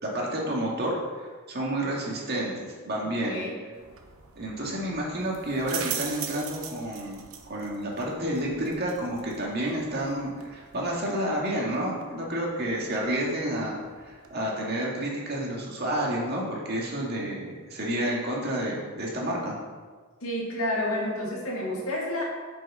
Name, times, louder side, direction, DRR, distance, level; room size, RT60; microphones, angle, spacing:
voice 1, 0.0-3.4 4.4-7.2 7.5-19.6, right 1 dB, 50° right, -3 dB, 2.0 m, -30 dB
sound 1, 3.7-14.3, right 8 dB, 70° right, 1.0 m, -42 dB
voice 2, 20.2-22.2, left 1 dB, 70° left, -4 dB, 2.6 m, -29 dB
7.8 x 6.2 x 5.6 m, 1.5 s
head